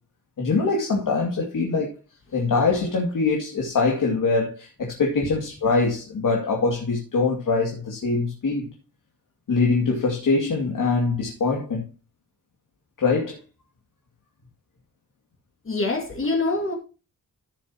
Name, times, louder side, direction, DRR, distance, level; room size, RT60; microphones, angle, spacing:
voice 1, 0.4-1.9 2.3-8.7 9.5-11.9 13.0-13.4, left 4 dB, 70° left, 2.5 m, -23 dB
voice 2, 15.7-16.7, left 3 dB, 40° left, 2.3 m, -25 dB
15.0 x 7.2 x 2.9 m
wide cardioid pair, 155°, 34 cm